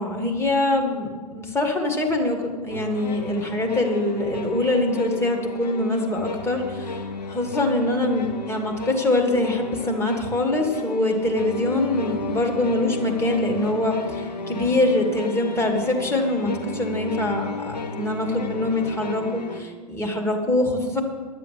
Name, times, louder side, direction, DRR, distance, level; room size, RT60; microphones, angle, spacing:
voice 1, 0.0-21.0, left 2 dB, 10° left, 3 dB, 2.1 m, -24 dB
sound 1, 2.7-19.6, left 3 dB, 85° left, 1.2 m, -34 dB
11.5 x 7.7 x 8.5 m, 1.5 s
figure-of-eight pair, 100°, 21 cm